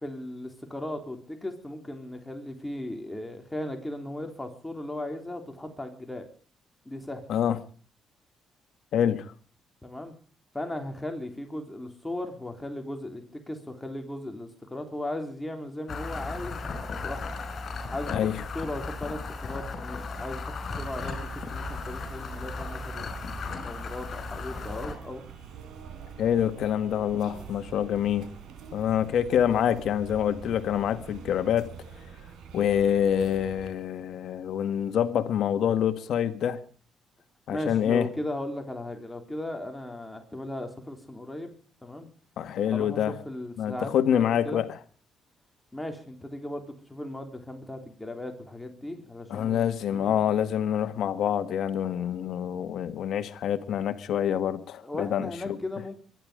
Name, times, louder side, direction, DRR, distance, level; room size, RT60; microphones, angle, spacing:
voice 1, 0.0-6.3 6.9-7.2 9.8-10.1 10.5-16.6 16.9-17.2 17.9-18.3 18.5-25.2 37.5-41.5 41.8-42.1 42.7-44.6 45.7-50.2 54.8-56.0, left 1 dB, 10° left, 3.6 m, -37 dB
voice 2, 8.9-9.3 18.1-18.4 26.2-28.3 28.7-31.7 32.5-36.6 37.5-38.1 42.4-43.1 43.6-44.7 49.3-55.6, left 9 dB, 70° left, 1.7 m, -26 dB
sound 1, 15.9-25.0, left 4 dB, 50° left, 5.6 m, -36 dB
sound 2, 20.7-33.7, right 7 dB, 80° right, 3.9 m, -45 dB
23.5 x 11.0 x 5.1 m
cardioid pair, 90°, 0 cm